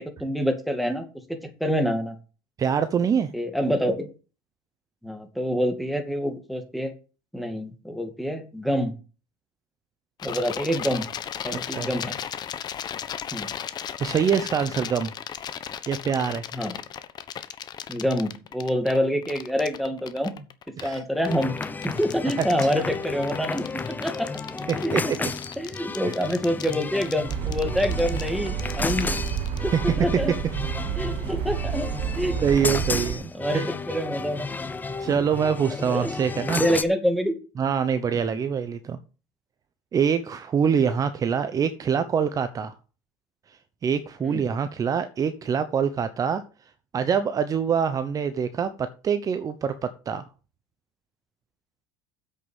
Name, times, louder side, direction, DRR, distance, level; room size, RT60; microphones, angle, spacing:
voice 1, 0.0-2.2 3.3-4.1 5.0-6.9 7.3-8.9 10.2-11.1 11.4-12.1 13.3-13.5 16.5-16.8 17.9-20.4 20.8-21.5 21.8-23.7 24.0-24.3 24.7-25.1 25.6-29.2 29.6-30.4 30.9-34.6 35.9-37.3 38.1-38.4 44.2-44.4, equal, ahead, 5 dB, 2.3 m, -27 dB
voice 2, 2.6-3.3 11.5-11.9 14.0-15.1 15.9-16.4 20.8-21.0 24.7-25.2 29.7-29.8 32.4-33.2 33.5-33.6 35.0-36.6 37.6-39.0 39.9-42.7 43.5-46.4 46.9-50.2, right 7 dB, 30° right, 10 dB, 0.9 m, -25 dB
sound 1, 10.2-29.6, left 9 dB, 40° left, 1.1 m, -36 dB
sound 2, 21.3-36.8, left 4 dB, 15° left, 0.9 m, -33 dB
sound 3, 27.3-33.2, right 9 dB, 55° right, 1.1 m, -30 dB
8.0 x 6.6 x 7.1 m, 0.35 s
supercardioid pair, 105°, 11 cm